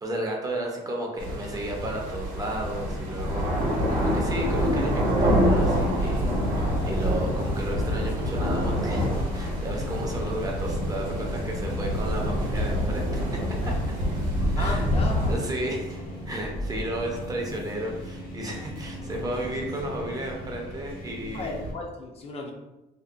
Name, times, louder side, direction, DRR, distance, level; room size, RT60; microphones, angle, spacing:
voice 1, 0.0-13.7 14.5-14.8 15.3-21.5, right 1 dB, 20° right, 0 dB, 0.5 m, -33 dB
sound 1, 1.2-15.4, equal, 55° right, 0.8 m, -26 dB
sound 2, 3.7-21.7, equal, 65° left, 0.7 m, -36 dB
voice 2, 14.6-15.4 21.3-22.5, left 3 dB, 35° left, 0 dB, 0.4 m, -34 dB
2.6 x 2.1 x 2.3 m, 1.0 s
cardioid pair, 110°, 17 cm